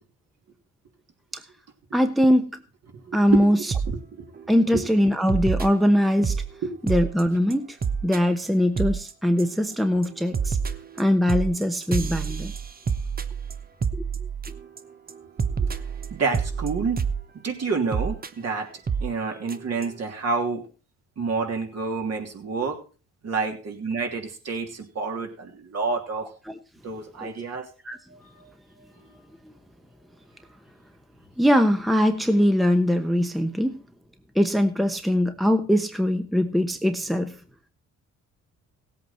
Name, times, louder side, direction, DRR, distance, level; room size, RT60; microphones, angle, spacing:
voice 1, 1.9-2.6 3.1-3.6 4.5-6.4 6.8-7.8 8.0-10.6 11.0-12.5 13.9-14.0 26.5-26.6 27.2-27.3 27.8-28.0 31.4-33.8 34.3-37.4, equal, ahead, 8 dB, 1.0 m, -21 dB
sound 1, 3.7-3.9 4.4-4.6 5.3-6.5 6.9-7.2 7.5-7.6 7.8-8.2 8.4-8.5 8.8-9.1 9.4-9.7 10.0-14.8 15.1-15.2 15.4-17.2 17.9-18.3 18.9-19.1 19.5-19.6 19.8-19.9, right 6 dB, 30° right, 0.9 m, -27 dB
voice 2, 3.9-4.2 4.7-4.8 6.6-6.7 15.5-15.8 16.1-17.0 17.4-18.7 19.0-20.7 21.2-22.8 23.2-26.3 26.8-27.7 28.2-28.3, right 4 dB, 55° right, 2 dB, 3.1 m, -29 dB
16.5 x 8.4 x 4.4 m, 0.36 s
cardioid pair, 90°, 30 cm